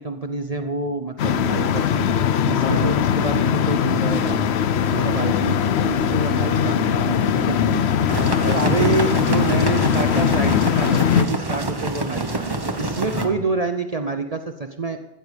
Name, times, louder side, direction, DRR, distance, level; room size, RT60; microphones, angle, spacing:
voice 1, 0.0-4.5 4.9-7.0 7.5-7.6 8.5-15.0, right 3 dB, 40° right, 7 dB, 0.7 m, -27 dB
sound 1, 1.2-11.2, left 8 dB, 70° left, 0.9 m, -20 dB
voice 2, 2.5-3.0 4.9-5.3 6.9-9.0 11.3-11.4 13.1-13.4, left 1 dB, 45° left, 4 dB, 1.9 m, -28 dB
sound 2, 5.3-9.3, left 2 dB, 20° left, 1.4 m, -37 dB
sound 3, 8.1-13.3, right 2 dB, 20° right, 1.1 m, -27 dB
16.5 x 13.5 x 5.2 m, 1.0 s
omnidirectional pair, 1.2 m